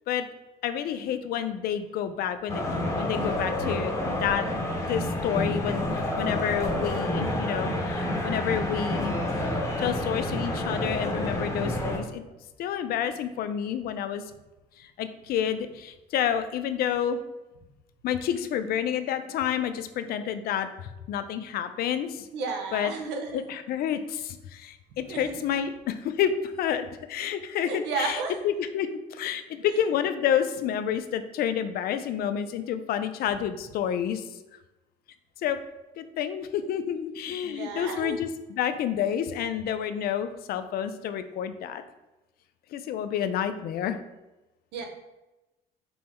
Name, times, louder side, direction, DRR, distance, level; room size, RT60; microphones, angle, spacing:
voice 1, 0.6-2.6 3.0-4.5 4.9-9.2 9.8-12.2 12.6-14.2 14.8-17.2 18.0-22.3 22.7-22.9 23.3-34.2 35.4-35.6 36.0-41.8 42.7-44.0, left 9 dB, 65° left, 10 dB, 0.4 m, -29 dB
sound 1, 2.5-12.0, left 1 dB, 15° left, 0.9 m, -29 dB
voice 2, 22.3-23.6 25.0-25.7 27.6-28.4 29.6-29.8 37.4-38.2 44.7-44.9, right 4 dB, 85° right, 3 dB, 0.8 m, -33 dB
5.4 x 2.0 x 4.3 m, 1.0 s
cardioid pair, 110°, 17 cm